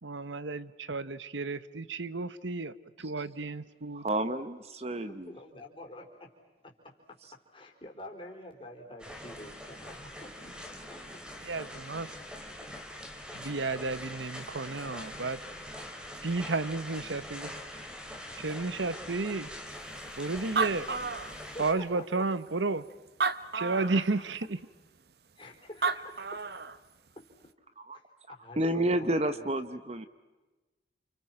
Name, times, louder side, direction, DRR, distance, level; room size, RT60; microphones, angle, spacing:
voice 1, 0.0-4.0 11.4-12.1 13.3-15.4 16.2-17.6 18.4-19.5 20.2-20.9 21.6-22.9 23.5-24.6, right 3 dB, 80° right, 15 dB, 1.0 m, -32 dB
voice 2, 3.9-5.3 7.2-7.3 27.8-28.0 28.3-30.1, right 1 dB, 35° right, 11 dB, 1.0 m, -31 dB
voice 3, 5.1-6.3 6.6-6.7 7.5-10.6 10.9-11.0 14.3-14.5 20.4-20.6 21.5-22.2 23.7-24.0 25.4-26.4 27.9-28.0 28.3-29.5, left 1 dB, 30° left, 1 dB, 4.5 m, -47 dB
sound 1, 9.0-21.7, left 1 dB, 5° right, 3.0 m, -43 dB
Animal, 20.1-20.2 20.4-21.8 22.5-22.6 23.1-24.1 25.5-25.6 25.8-26.8, right 5 dB, 55° right, 0.9 m, -31 dB
29.5 x 29.5 x 6.0 m, 1.2 s
head